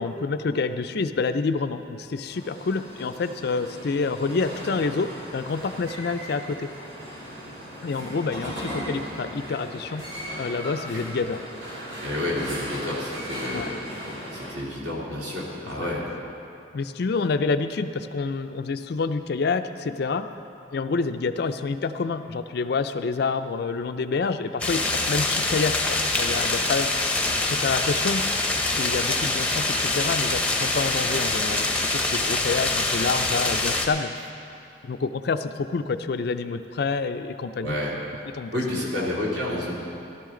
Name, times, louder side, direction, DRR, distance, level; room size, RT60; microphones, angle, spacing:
voice 1, 0.0-6.8 7.8-10.1 10.4-11.4 13.5-13.7 15.8-15.9 16.7-20.3 20.7-26.9 27.5-28.3 28.7-31.6 31.9-34.1 34.8-37.8 38.3-39.1, left 4 dB, 55° left, 10 dB, 0.4 m, -28 dB
sound 1, 2.3-14.5, equal, 85° right, 3.5 m, -37 dB
voice 2, 12.0-13.8 14.3-16.0 37.6-37.9 38.5-39.7, left 1 dB, 65° right, -5 dB, 2.6 m, -29 dB
sound 2, 24.6-33.9, left 2 dB, 5° left, 0.7 m, -25 dB
15.0 x 12.0 x 3.8 m, 2.7 s
head